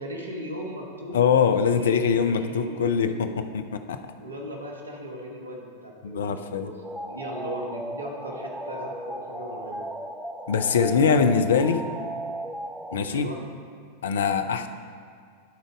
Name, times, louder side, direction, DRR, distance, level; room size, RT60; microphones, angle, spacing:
voice 1, 0.0-1.2 1.6-3.4 4.2-9.9 11.1-11.2 13.1-13.4, equal, 75° right, 0 dB, 1.0 m, -37 dB
voice 2, 1.1-4.0 6.0-6.7 10.5-11.8 12.9-13.3 14.0-14.7, left 6 dB, 65° left, 8 dB, 0.5 m, -23 dB
sound 1, 6.8-13.0, right 1 dB, 5° right, 0.5 m, -36 dB
12.0 x 4.0 x 5.0 m, 2.1 s
figure-of-eight pair, 90°, 0 cm